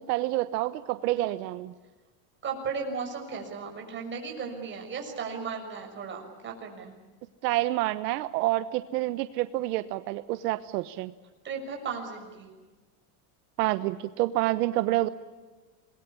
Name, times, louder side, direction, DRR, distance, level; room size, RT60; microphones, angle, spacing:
voice 1, 0.0-1.7 7.4-11.1 13.6-15.1, right 16 dB, 85° right, 11 dB, 1.2 m, -28 dB
voice 2, 2.4-6.9 11.4-12.5, right 5 dB, 25° right, 2 dB, 6.3 m, -35 dB
27.5 x 21.0 x 8.5 m, 1.3 s
cardioid pair, 160°, 47 cm